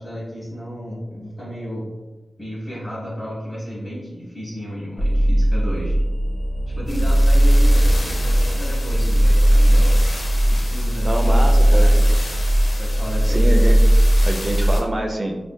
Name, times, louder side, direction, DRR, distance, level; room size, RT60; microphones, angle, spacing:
voice 1, 0.0-1.9 2.4-6.0 6.8-9.9 10.5-12.2 12.8-13.4, equal, 20° left, -9 dB, 1.0 m, -33 dB
sound 1, 5.0-14.8, equal, 60° left, 0.7 m, -17 dB
voice 2, 11.0-11.9 13.2-13.8 14.2-15.4, right 1 dB, 30° right, 2 dB, 0.4 m, -25 dB
4.9 x 2.5 x 2.2 m, 1.1 s
wide cardioid pair, 100°, 0 cm